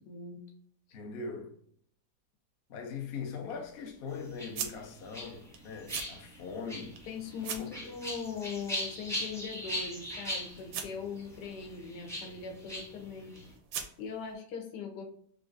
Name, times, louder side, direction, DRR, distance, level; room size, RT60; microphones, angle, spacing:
voice 1, 0.0-0.4 7.1-13.3 14.0-15.0, left 6 dB, 85° left, 1.3 m, -40 dB
voice 2, 0.9-1.5 2.7-7.0 7.6-7.7, left 5 dB, 60° left, 0.6 m, -41 dB
sound 1, 2.7-14.3, right 7 dB, 85° right, 1.2 m, -46 dB
sound 2, 4.1-13.5, equal, 5° left, 0.5 m, -41 dB
3.9 x 2.4 x 2.5 m
omnidirectional pair, 1.8 m